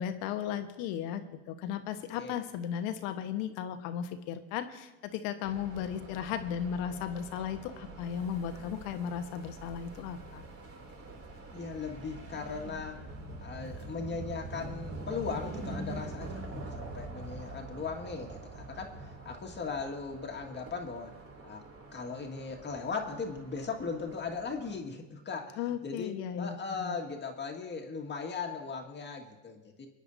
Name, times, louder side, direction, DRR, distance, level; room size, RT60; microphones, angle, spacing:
voice 1, 0.0-10.4 25.6-27.0, left 8 dB, 60° left, 8 dB, 1.3 m, -36 dB
sound 1, 5.4-24.8, right 2 dB, 35° right, 2.9 m, -45 dB
voice 2, 11.5-13.0 13.4-21.1 21.4-21.6 21.9-29.9, left 5 dB, 25° left, 2 dB, 1.9 m, -38 dB
26.0 x 9.9 x 2.7 m, 1.1 s
hypercardioid pair, 90°, 39 cm